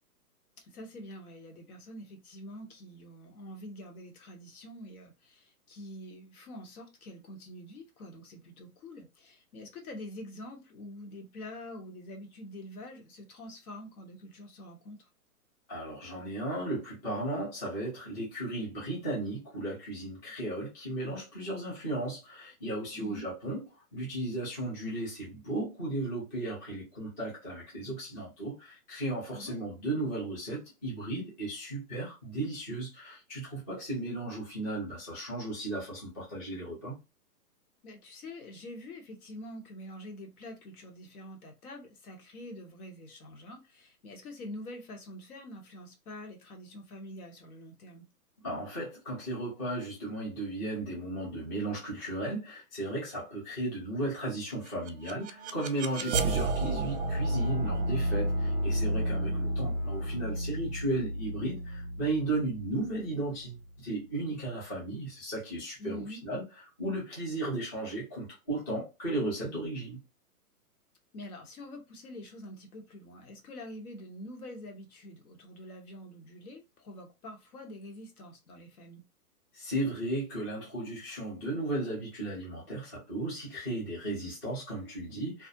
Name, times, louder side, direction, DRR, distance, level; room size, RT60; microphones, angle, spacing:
voice 1, 0.6-15.1 22.9-23.2 29.3-29.6 37.8-48.0 56.0-56.3 65.8-66.2 71.1-79.0, left 1 dB, 70° left, 1.0 m, -46 dB
voice 2, 15.7-23.6 23.9-37.0 48.4-66.4 66.8-70.0 79.5-85.5, right 2 dB, 15° left, 0.4 m, -35 dB
sound 1, 54.7-63.6, right 1 dB, 50° right, 0.4 m, -31 dB
Bowed string instrument, 55.1-60.9, left 2 dB, 40° left, 0.9 m, -50 dB
2.4 x 2.0 x 2.7 m
hypercardioid pair, 145°, 46 cm